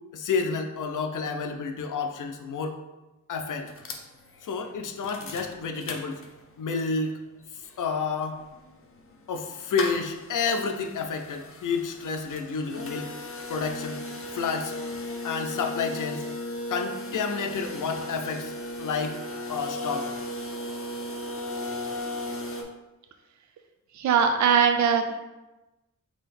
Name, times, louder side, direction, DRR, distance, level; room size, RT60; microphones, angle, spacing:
voice 1, 0.1-2.8 3.3-3.7 4.4-6.2 6.6-7.2 7.5-8.4 9.3-13.2 13.5-14.0 14.3-14.8 15.2-16.3 16.7-18.5 18.8-19.2 19.5-20.2, left 5 dB, 85° left, 6 dB, 0.5 m, -30 dB
sound 1, 3.7-6.6 7.0-7.1 7.3-22.6, left 1 dB, 45° left, 0.6 m, -36 dB
voice 2, 24.0-25.1, right 7 dB, 65° right, 5 dB, 0.4 m, -21 dB
3.8 x 2.9 x 4.2 m, 1.1 s
wide cardioid pair, 85°, 31 cm